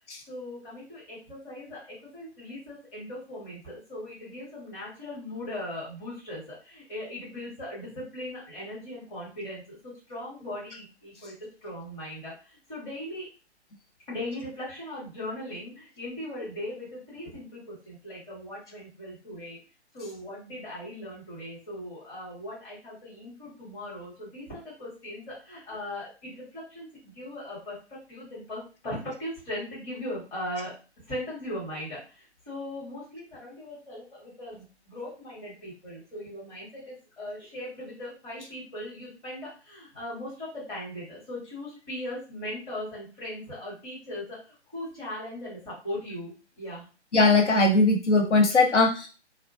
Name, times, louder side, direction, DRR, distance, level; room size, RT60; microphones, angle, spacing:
voice 1, 0.3-11.3 11.6-13.3 14.1-19.6 19.9-46.9, left 1 dB, 10° left, -8 dB, 0.6 m, -39 dB
voice 2, 47.1-49.1, left 3 dB, 80° left, 1 dB, 0.9 m, -20 dB
2.3 x 2.1 x 2.5 m, 0.33 s
figure-of-eight pair, 140°, 35 cm